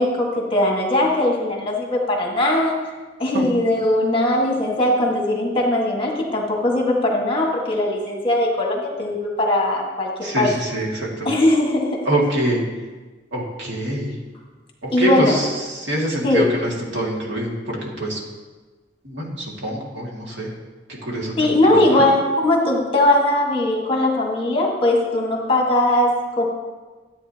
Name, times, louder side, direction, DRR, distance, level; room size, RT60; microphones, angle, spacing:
voice 1, 0.0-2.8 3.2-10.1 10.4-10.5 11.3-12.1 14.9-15.4 16.2-16.5 21.4-26.5, left 1 dB, 30° left, -1 dB, 1.6 m, -19 dB
voice 2, 10.2-11.3 12.0-12.6 13.3-14.2 14.8-18.2 19.0-20.5 20.9-21.6 21.9-22.1, right 1 dB, 70° right, -3 dB, 2.2 m, -25 dB
13.0 x 8.6 x 2.9 m, 1.3 s
head